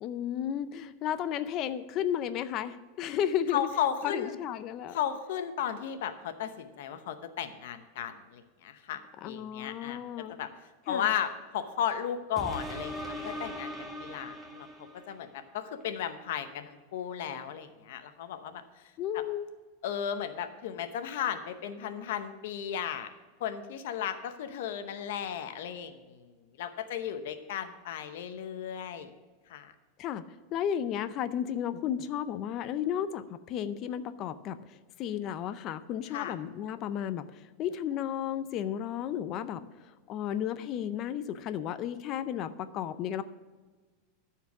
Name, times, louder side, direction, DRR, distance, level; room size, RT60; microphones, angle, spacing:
voice 1, 0.0-3.7 4.0-5.0 9.2-10.3 10.9-11.1 19.0-19.5 30.0-30.2 30.5-39.7 40.1-43.2, left 9 dB, 35° left, 13 dB, 0.5 m, -33 dB
voice 2, 3.5-4.4 4.9-10.0 10.3-10.5 10.9-13.7 14.0-14.7 15.1-18.6 19.1-19.2 19.8-23.1 23.4-26.3 26.6-29.1 29.5-29.7 36.1-36.3, left 9 dB, 70° left, 9 dB, 0.8 m, -35 dB
sound 1, 12.4-15.3 15.8-15.9, equal, 10° right, 1.4 m, -40 dB
13.0 x 4.6 x 6.0 m, 1.3 s
supercardioid pair, 160°, 0 cm